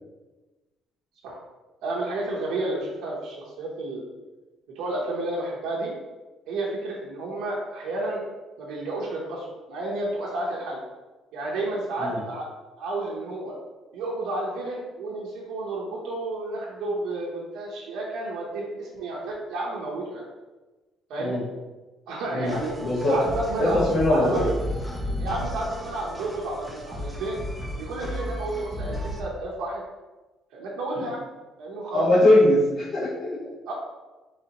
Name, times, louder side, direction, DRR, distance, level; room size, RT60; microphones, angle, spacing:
voice 1, 1.8-4.0 4.8-5.9 6.5-8.2 8.6-10.8 11.3-12.5 12.8-13.5 13.9-20.2 21.1-21.4 22.1-22.7 23.1-23.8 24.1-24.5 25.2-27.4 27.8-29.8 30.5-31.2 31.6-32.1 33.7-33.8, right 2 dB, 90° right, -4 dB, 0.7 m, -31 dB
voice 2, 22.3-23.2 23.6-24.4 30.9-31.0 31.9-33.5, left 1 dB, 55° left, -13 dB, 1.4 m, -21 dB
sound 1, 22.5-29.2, left 1 dB, ahead, 0.5 m, -33 dB
4.0 x 3.4 x 2.8 m, 1.2 s
cardioid pair, 155°, 0 cm